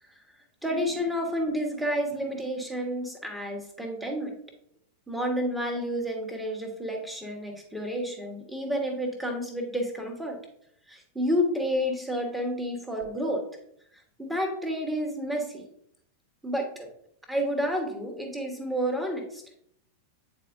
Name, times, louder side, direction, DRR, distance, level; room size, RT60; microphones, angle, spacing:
voice 1, 0.6-4.4 5.1-10.4 10.9-13.4 14.2-15.6 16.4-16.9 17.3-19.4, equal, 5° right, 2 dB, 1.4 m, -30 dB
9.0 x 4.2 x 2.6 m, 0.69 s
figure-of-eight pair, 90°, 0 cm